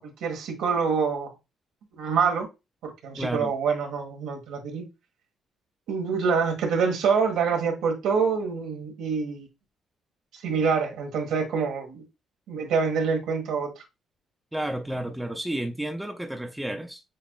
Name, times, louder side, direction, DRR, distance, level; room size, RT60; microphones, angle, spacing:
voice 1, 0.0-1.3 2.0-2.5 2.8-4.8 5.9-9.5 10.4-12.0 12.5-13.7, right 5 dB, 85° right, 1.5 m, -26 dB
voice 2, 3.2-3.5 14.5-17.0, right 1 dB, 5° right, 0.7 m, -31 dB
7.2 x 2.9 x 2.2 m
cardioid pair, 90°, 0 cm